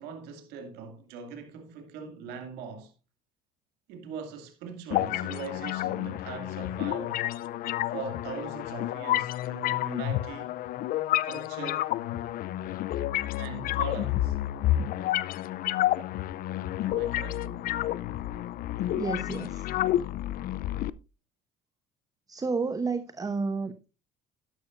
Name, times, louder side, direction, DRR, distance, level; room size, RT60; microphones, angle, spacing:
voice 1, 0.0-2.9 3.9-7.2 7.9-10.5 11.2-11.9 13.4-14.4 16.8-17.5, right 5 dB, 80° right, 2.4 m, -41 dB
sound 1, 4.9-20.9, left 14 dB, 60° left, 0.6 m, -30 dB
voice 2, 19.0-19.7 22.3-23.9, right 4 dB, 20° right, 0.9 m, -31 dB
12.0 x 11.0 x 2.5 m
supercardioid pair, 85°, 17 cm